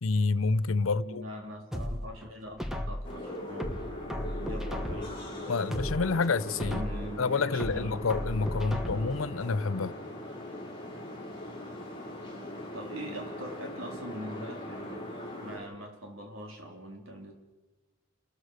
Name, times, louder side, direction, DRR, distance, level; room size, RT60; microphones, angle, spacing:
voice 1, 0.0-1.2 5.5-6.8 7.2-9.9, left 4 dB, 85° left, 0.7 m, -28 dB
voice 2, 0.8-3.8 4.4-5.2 6.6-8.1 8.6-9.0 12.6-17.3, equal, 80° right, 4.0 m, -43 dB
sound 1, 1.7-3.1 3.6-5.2 5.6-7.1 7.6-9.2 9.6-9.7, equal, ahead, 1.5 m, -35 dB
sound 2, 3.0-15.6, left 1 dB, 25° left, 5.8 m, -40 dB
29.0 x 14.0 x 6.5 m
head